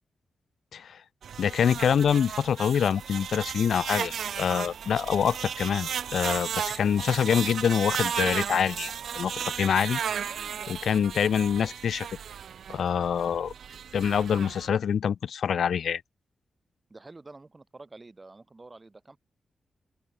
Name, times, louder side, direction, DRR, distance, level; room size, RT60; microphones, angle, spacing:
sound 1, 1.2-14.7, right 8 dB, 80° right, 0.4 m, -34 dB
voice 1, 1.4-10.0 10.7-12.1 12.7-13.5 13.9-16.0, left 8 dB, 75° left, 0.8 m, -25 dB
voice 2, 16.9-19.2, right 3 dB, 20° right, 3.1 m, -48 dB
wide cardioid pair, 140°, 0 cm